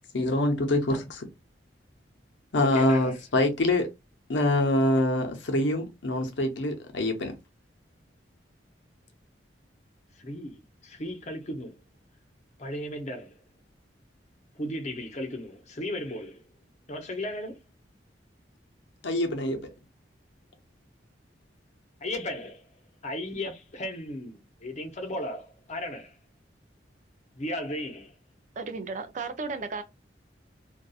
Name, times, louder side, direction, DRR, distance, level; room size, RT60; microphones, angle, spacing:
voice 1, 0.1-1.3 2.5-3.9 4.3-7.3 19.0-19.7, left 1 dB, 75° left, 0.7 m, -25 dB
voice 2, 2.6-3.1 10.2-11.7 12.6-13.3 14.6-16.4 16.9-17.6 22.0-22.6 23.0-26.1 27.4-28.1, left 1 dB, 40° left, 0.6 m, -35 dB
voice 3, 28.6-29.8, right 4 dB, 40° right, 0.4 m, -34 dB
2.6 x 2.3 x 2.3 m
head